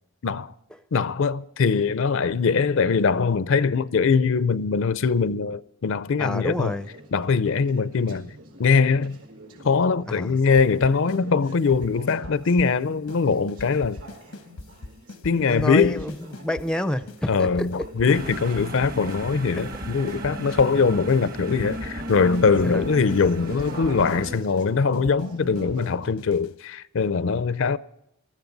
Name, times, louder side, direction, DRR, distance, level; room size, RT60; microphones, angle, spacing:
voice 1, 0.2-0.5 0.9-6.7 7.1-8.3 8.6-9.2 9.6-14.0 15.2-16.0 17.3-27.8, left 5 dB, 60° left, 0.5 m, -22 dB
voice 2, 6.2-6.9 10.1-10.3 15.3-17.7 19.6-19.7 20.5-20.6 22.6-22.8, left 1 dB, 5° left, 0.5 m, -29 dB
Conversation / Chatter, 6.5-26.1, right 1 dB, 85° right, 4.4 m, -45 dB
sound 1, 10.6-11.2 11.5-12.8 13.1-13.2 13.5-16.7 17.1-17.2 17.5-19.2 19.5-20.8 21.1-21.2 21.5-26.6, left 2 dB, 90° left, 0.9 m, -41 dB
sound 2, 18.1-24.4, right 1 dB, 40° right, 1.2 m, -35 dB
20.0 x 13.5 x 4.0 m
head